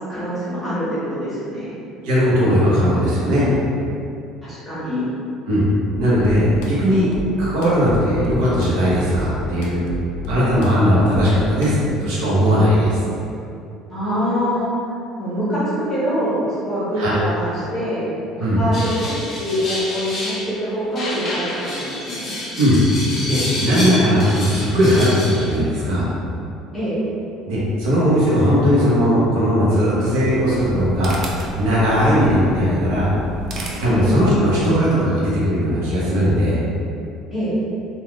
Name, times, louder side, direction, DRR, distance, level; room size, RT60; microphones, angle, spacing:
voice 1, 0.1-1.7 4.4-5.0 13.9-14.7 15.2-18.1 18.4-22.3 26.7-27.0 32.0-32.1 33.9-34.0 37.3-37.5, equal, 5° left, -13 dB, 1.0 m, -24 dB
voice 2, 2.0-3.5 5.5-5.7 6.0-7.1 7.4-9.8 10.3-13.0 17.0-17.1 18.4-18.6 22.6-22.8 23.2-26.1 27.5-31.2 31.6-33.1 33.8-36.6, equal, 75° right, -8 dB, 0.8 m, -18 dB
sound 1, 5.9-11.9, left 1 dB, 85° left, 0.4 m, -33 dB
sound 2, 18.7-20.5 21.0-25.6, left 1 dB, 25° left, 0.5 m, -29 dB
sound 3, 30.2-34.7, right 1 dB, 35° right, 0.3 m, -33 dB
3.3 x 2.2 x 2.3 m, 2.6 s
cardioid pair, 175°, 0 cm